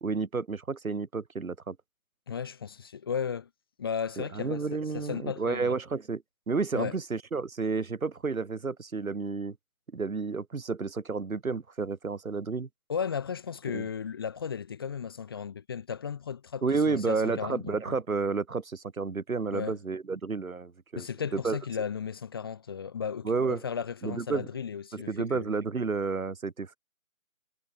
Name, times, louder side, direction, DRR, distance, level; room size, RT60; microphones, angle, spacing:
voice 1, 0.0-1.8 4.2-9.6 9.9-12.7 13.7-13.9 16.6-21.1 21.3-21.6 23.2-23.6 24.0-24.5 24.9-26.8, right 4 dB, 90° right, 1.6 m, -31 dB
voice 2, 2.3-3.5 3.8-5.7 6.7-6.9 12.9-18.0 19.5-19.8 21.0-25.5, left 7 dB, 15° left, 0.7 m, -35 dB
figure-of-eight pair, 150°, 41 cm